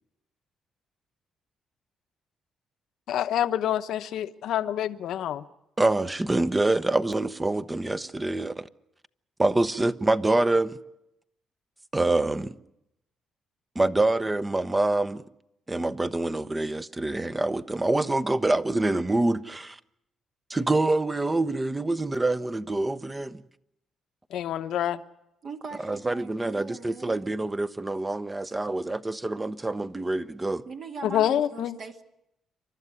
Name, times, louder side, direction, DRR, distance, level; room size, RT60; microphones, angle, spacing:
voice 1, 3.1-5.4 24.3-25.0 31.0-31.8, left 11 dB, 75° left, 1.0 m, -27 dB
voice 2, 5.8-8.7 9.4-10.8 11.9-12.6 13.7-15.2 15.7-19.8 20.5-23.4 25.8-30.6, right 2 dB, 15° right, 0.8 m, -26 dB
voice 3, 25.4-27.2 30.7-32.0, right 4 dB, 50° right, 2.1 m, -40 dB
28.5 x 12.5 x 9.7 m
cardioid pair, 90°, 0 cm